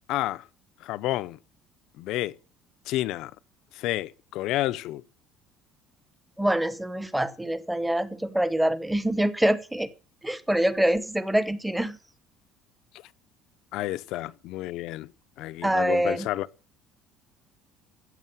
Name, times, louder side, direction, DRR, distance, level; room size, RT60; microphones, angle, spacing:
voice 1, 0.1-0.5 0.8-1.4 2.0-2.3 2.9-3.3 3.7-5.0 13.7-15.1 15.4-16.5, left 16 dB, 55° left, 0.7 m, -30 dB
voice 2, 6.4-9.9 10.2-12.0 15.6-16.3, right 1 dB, 5° right, 1.0 m, -25 dB
14.0 x 8.3 x 9.2 m
cardioid pair, 175°, 0 cm